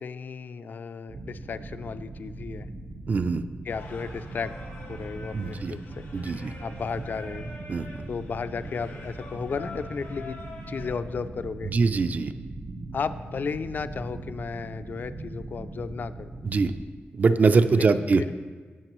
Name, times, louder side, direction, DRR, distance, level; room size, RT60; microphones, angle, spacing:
voice 1, 0.0-2.7 3.6-4.5 4.9-6.0 6.6-7.5 8.1-10.4 10.7-11.7 12.9-16.3 17.8-18.3, left 5 dB, 50° left, 12 dB, 0.3 m, -34 dB
sound 1, 1.1-16.8, right 2 dB, 60° right, 1.0 m, -40 dB
voice 2, 3.1-3.4 5.3-5.7 6.1-6.5 7.7-7.8 11.7-12.3 16.4-16.7 17.1-18.2, right 4 dB, 40° right, 11 dB, 0.3 m, -22 dB
Singing, 3.7-10.9, left 2 dB, 90° left, 1.8 m, -46 dB
15.5 x 5.9 x 3.0 m, 1.5 s
wide cardioid pair, 155°, 4 cm